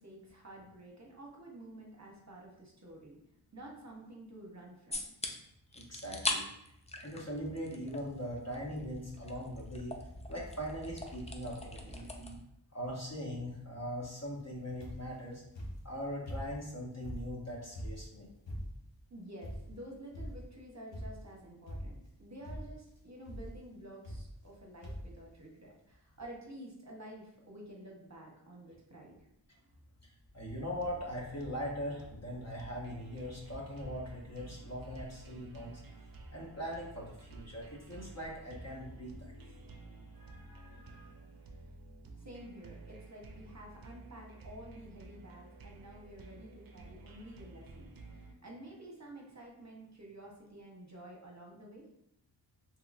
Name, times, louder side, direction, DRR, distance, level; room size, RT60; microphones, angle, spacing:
voice 1, 0.0-3.2 3.5-5.0 11.7-12.2 19.1-29.2 41.4-41.6 42.1-51.9, right 1 dB, 40° right, -2 dB, 0.9 m, -51 dB
sound 1, 4.9-5.3 5.7-6.4 6.7-8.0 8.3-12.4, left 2 dB, 15° left, 0.4 m, -40 dB
voice 2, 5.7-9.9 10.3-12.3 12.7-15.4 15.8-18.3 30.0-30.1 30.3-35.8 36.3-39.6 40.1-41.1, equal, 35° left, -3 dB, 1.0 m, -41 dB
sound 2, 14.8-15.2 15.6-16.7 17.0-19.0 19.4-19.8 20.1-20.6 20.9-21.3 21.7-22.2 22.4-22.9 23.3-23.6 24.0-24.6 24.8-25.2 25.9-26.0 26.2-26.3, equal, 80° left, 0.8 m, -43 dB
sound 3, 30.4-48.3, right 3 dB, 55° right, 0.5 m, -52 dB
3.6 x 2.9 x 2.5 m, 0.78 s
wide cardioid pair, 45°, 43 cm